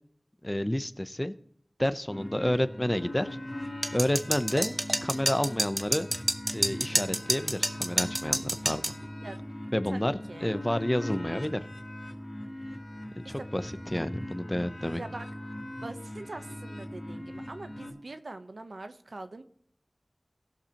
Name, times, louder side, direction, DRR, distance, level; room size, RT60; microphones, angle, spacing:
voice 1, 0.4-1.3 1.8-3.3 3.9-4.7 5.0-6.1 6.5-8.8 9.7-11.7 13.1-15.0, left 1 dB, 20° left, 11 dB, 0.7 m, -30 dB
sound 1, 2.1-17.9, left 1 dB, 45° left, 2.8 m, -40 dB
sound 2, 3.8-9.0, right 1 dB, 45° right, 0.9 m, -28 dB
voice 2, 9.9-10.5 13.2-13.5 15.0-15.3 15.8-19.4, right 2 dB, 85° right, 9 dB, 0.8 m, -43 dB
19.0 x 6.7 x 2.9 m, 0.69 s
wide cardioid pair, 40°, 0 cm